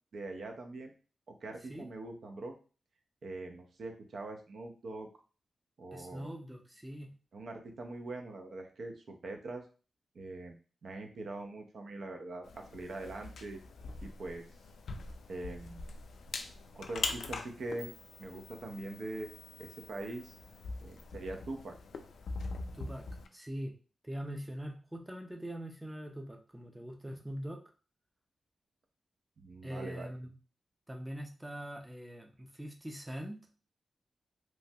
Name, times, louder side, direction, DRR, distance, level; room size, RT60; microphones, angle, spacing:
voice 1, 0.1-0.9 1.4-2.6 3.2-5.1 5.8-6.3 7.3-9.6 10.1-10.6 10.8-13.6 14.0-14.4 15.3-15.8 16.7-17.9 18.2-19.3 19.6-20.3 20.8-21.7 29.4-30.1, right 2 dB, 70° right, 4 dB, 0.5 m, -42 dB
voice 2, 5.9-7.1 22.7-23.1 23.3-23.7 24.0-27.6 29.6-30.3 30.9-33.4, equal, 10° right, 3 dB, 0.4 m, -42 dB
sound 1, 12.4-23.3, left 3 dB, 85° left, 0.3 m, -43 dB
3.0 x 2.2 x 2.7 m, 0.36 s
wide cardioid pair, 120°, 0 cm